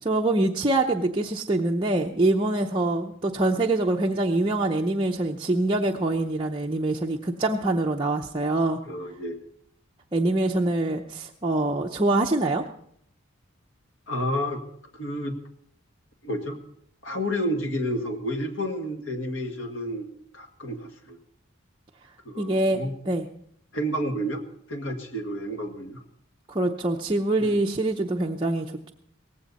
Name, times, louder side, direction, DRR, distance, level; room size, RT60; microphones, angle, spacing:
voice 1, 0.0-8.8 10.1-12.6 22.4-23.3 26.5-28.9, right 2 dB, 25° right, -1 dB, 0.7 m, -24 dB
voice 2, 8.8-9.4 14.1-14.6 15.0-15.4 16.2-16.6 17.0-20.1 20.3-21.2 22.2-22.9 23.7-26.0 27.4-27.6, equal, 65° left, 4 dB, 2.0 m, -30 dB
18.0 x 15.5 x 4.2 m, 0.68 s
head